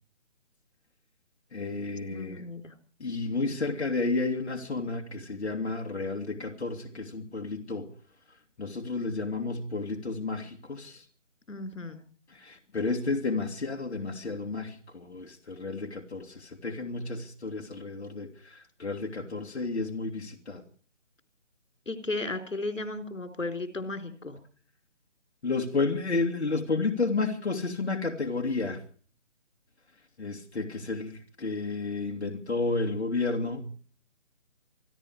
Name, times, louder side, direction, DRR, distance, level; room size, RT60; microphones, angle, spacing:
voice 1, 1.5-2.5 3.0-7.9 8.6-11.0 12.3-20.6 25.4-28.8 30.2-33.7, left 3 dB, 60° left, 2.8 m, -31 dB
voice 2, 2.1-2.7 11.5-12.0 21.9-24.4, left 2 dB, 85° left, 4.4 m, -35 dB
27.0 x 11.5 x 4.7 m
figure-of-eight pair, 165°, 37 cm